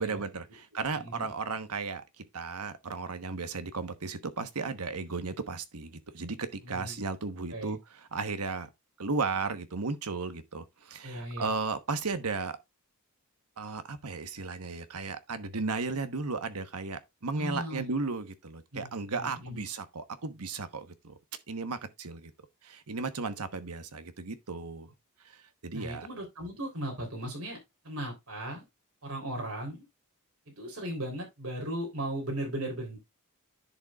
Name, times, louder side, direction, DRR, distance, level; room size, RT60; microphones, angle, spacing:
voice 1, 0.0-7.8 8.1-8.7 9.0-12.6 13.6-21.2 21.5-22.3 22.6-24.9 25.2-25.4 25.6-26.1, right 4 dB, 90° right, 1.1 m, -35 dB
voice 2, 1.0-1.3 6.6-7.0 7.5-7.8 11.0-11.5 17.3-17.9 18.7-18.9 19.2-19.6 25.7-27.6 27.8-28.6 29.0-29.8 30.6-33.0, right 1 dB, 70° right, 3.5 m, -37 dB
10.5 x 6.6 x 2.4 m
head